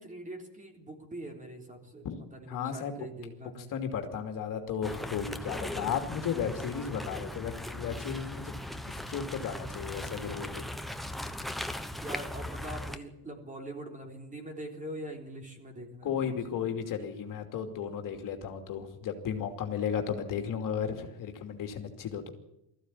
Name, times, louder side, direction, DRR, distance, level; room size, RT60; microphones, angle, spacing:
voice 1, 0.0-2.1 2.3-3.7 6.1-6.5 12.0-16.4, right 1 dB, 20° right, 4 dB, 3.8 m, -43 dB
voice 2, 2.5-2.9 3.7-8.5 8.8-10.7 16.0-22.3, left 7 dB, 50° left, 5 dB, 2.7 m, -34 dB
sound 1, 4.8-13.0, left 1 dB, ahead, 1.1 m, -38 dB
20.0 x 14.5 x 9.8 m, 0.89 s
cardioid pair, 130°, 41 cm